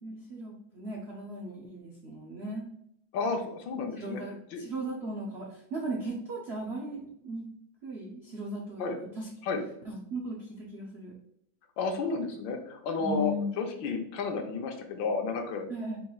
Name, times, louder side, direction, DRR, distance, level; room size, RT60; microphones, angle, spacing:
voice 1, 0.0-2.7 4.0-7.5 7.8-9.3 9.8-11.1 13.0-13.5 15.7-16.0, right 1 dB, 85° right, -3 dB, 0.5 m, -37 dB
voice 2, 3.1-4.2 4.5-4.6 8.8-9.0 9.4-9.6 11.8-15.7, left 4 dB, 75° left, 4 dB, 1.4 m, -32 dB
4.6 x 4.2 x 2.3 m, 0.73 s
omnidirectional pair, 2.1 m